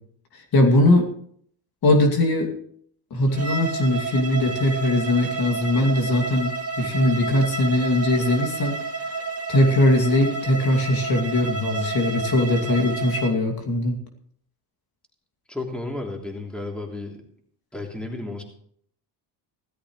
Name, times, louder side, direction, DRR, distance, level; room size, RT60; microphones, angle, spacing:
voice 1, 0.5-1.0 1.8-2.5 3.1-8.8 9.5-14.0, left 1 dB, 55° left, 3 dB, 2.7 m, -20 dB
Bowed string instrument, 3.3-13.4, right 4 dB, 35° right, 2.0 m, -31 dB
voice 2, 15.5-17.2 17.7-18.4, left 2 dB, ahead, 1 dB, 3.2 m, -32 dB
17.0 x 13.5 x 3.2 m, 0.63 s
cardioid pair, 95°, 44 cm